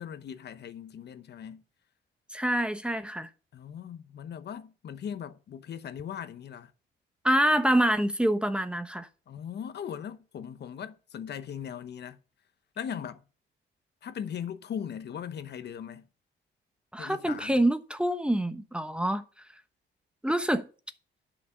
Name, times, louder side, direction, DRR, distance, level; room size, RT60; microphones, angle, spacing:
voice 1, 0.0-1.6 3.5-6.7 9.3-12.2 12.8-13.2 14.0-16.1 17.0-17.6, left 8 dB, 60° left, 0.9 m, -39 dB
voice 2, 2.3-3.3 7.2-9.1 16.9-19.2 20.2-20.7, right 1 dB, 5° right, 1.0 m, -26 dB
10.0 x 6.1 x 5.6 m
cardioid pair, 90°, 20 cm